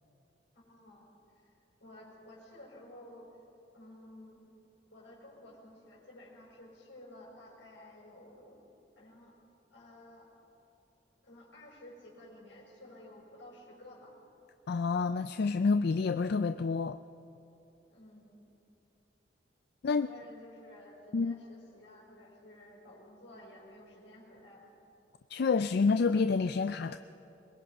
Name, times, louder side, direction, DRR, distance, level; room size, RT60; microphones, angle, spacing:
voice 1, 0.5-1.6 1.8-3.4 3.7-4.4 4.9-8.6 9.0-9.3 9.7-10.3 11.2-14.1 17.9-18.4 19.9-24.7, left 1 dB, 80° left, -4 dB, 5.5 m, -53 dB
voice 2, 14.7-17.0 19.8-20.1 21.1-21.3 25.3-27.0, left 4 dB, 60° left, 10 dB, 0.4 m, -28 dB
22.5 x 21.0 x 5.5 m, 2.8 s
head